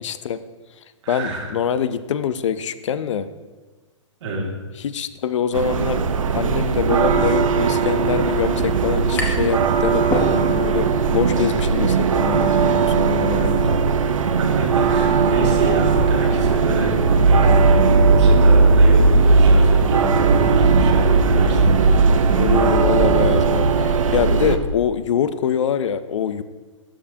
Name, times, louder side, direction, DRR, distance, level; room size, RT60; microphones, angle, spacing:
voice 1, 0.0-0.4 1.1-3.3 4.8-6.1 6.3-13.8 22.3-26.4, left 8 dB, 65° left, 14 dB, 0.5 m, -24 dB
voice 2, 1.0-1.5 4.2-4.4 14.4-21.7, right 2 dB, 60° right, -2 dB, 2.2 m, -28 dB
sound 1, 5.5-24.6, right 4 dB, 80° right, 0.6 m, -17 dB
sound 2, 9.2-9.6 9.9-10.8, left 2 dB, 10° left, 0.9 m, -27 dB
12.5 x 4.8 x 2.7 m, 1.3 s
hypercardioid pair, 140°, 17 cm